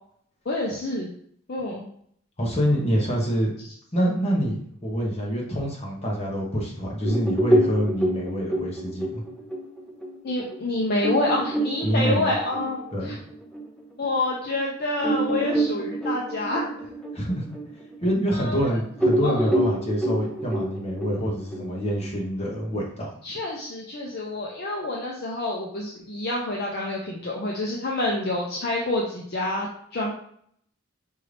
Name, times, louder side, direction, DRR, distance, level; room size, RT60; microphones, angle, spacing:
voice 1, 0.5-1.1 1.5-1.8 10.2-13.1 14.0-16.8 18.3-18.8 19.2-19.5 23.2-30.1, left 2 dB, 50° left, -2 dB, 0.6 m, -28 dB
voice 2, 2.4-3.5 3.9-9.2 11.8-12.3 12.9-13.1 17.1-17.4 18.0-23.1, equal, 30° left, -3 dB, 1.1 m, -26 dB
sound 1, 7.0-14.1 14.5-14.6 15.0-18.6 19.0-22.1, right 1 dB, 5° left, 0.5 m, -27 dB
5.4 x 2.6 x 3.3 m, 0.66 s
head